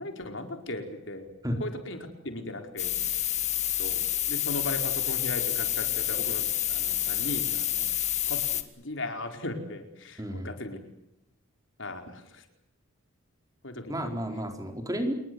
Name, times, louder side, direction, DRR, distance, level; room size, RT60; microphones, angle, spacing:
voice 1, 0.0-1.3 1.6-2.9 3.8-7.9 8.3-10.8 11.8-12.5 13.6-14.2, left 2 dB, 60° left, 6 dB, 4.7 m, -37 dB
sound 1, 2.8-8.6, left 11 dB, 35° left, 2.2 m, -28 dB
voice 2, 10.2-10.5 13.9-15.1, equal, 15° right, 5 dB, 4.4 m, -31 dB
28.5 x 22.0 x 7.8 m, 0.80 s
head